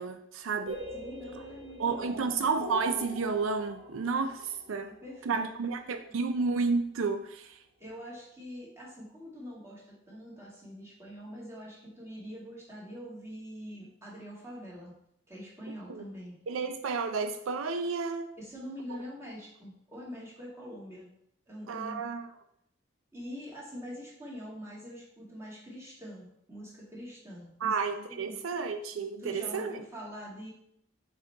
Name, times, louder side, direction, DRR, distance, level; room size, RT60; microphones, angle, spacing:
voice 1, 0.0-0.8 1.8-4.9 5.3-7.6 15.7-16.0 16.5-18.3 21.7-22.3 27.6-29.8, right 4 dB, 90° right, 8 dB, 0.5 m, -31 dB
sound 1, 0.7-6.4, equal, 65° right, 1.5 m, -44 dB
voice 2, 0.9-2.3 5.0-5.4 5.9-6.1 7.8-14.9 15.3-16.4 18.4-21.1 21.5-22.0 23.1-27.8 28.1-28.4 29.2-30.5, equal, 15° right, -6 dB, 1.9 m, -44 dB
6.3 x 4.3 x 3.4 m, 0.73 s
head